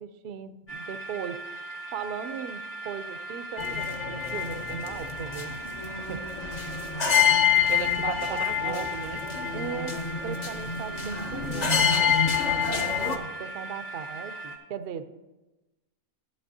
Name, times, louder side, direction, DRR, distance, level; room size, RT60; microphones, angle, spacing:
voice 1, 0.0-1.4 1.9-6.2 8.0-8.9 9.5-9.9 10.2-12.2 12.6-15.1, right 7 dB, 65° right, 11 dB, 0.5 m, -38 dB
sound 1, 0.7-14.6, right 2 dB, 70° left, 2.0 m, -39 dB
sound 2, 3.6-13.2, left 8 dB, 40° left, 0.6 m, -27 dB
voice 2, 6.9-9.2, right 8 dB, 80° right, 10 dB, 1.1 m, -37 dB
13.5 x 8.7 x 2.7 m, 1.1 s
omnidirectional pair, 1.5 m